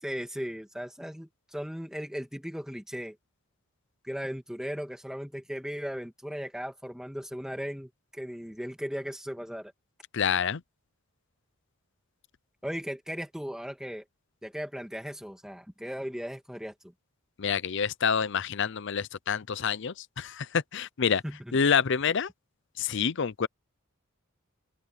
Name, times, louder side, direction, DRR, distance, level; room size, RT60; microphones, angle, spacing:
voice 1, 0.0-3.2 4.0-9.7 12.6-14.0 14.4-16.7 21.2-21.6, equal, 5° right, 2.3 m, -37 dB
voice 2, 10.1-10.6 17.4-21.2 21.5-22.3 22.8-23.5, left 6 dB, 60° left, 0.6 m, -27 dB
open air
head